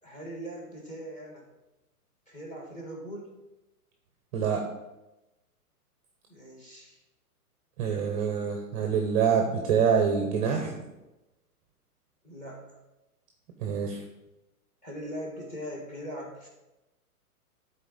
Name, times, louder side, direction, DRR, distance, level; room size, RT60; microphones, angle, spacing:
voice 1, 0.0-1.5 2.3-3.3 6.3-7.0 12.2-12.8 14.8-16.5, equal, 15° left, -1 dB, 1.7 m, -40 dB
voice 2, 7.8-10.8 13.6-14.0, right 7 dB, 25° right, 3 dB, 0.6 m, -26 dB
10.0 x 4.3 x 4.0 m, 1.0 s
hypercardioid pair, 140°, 46 cm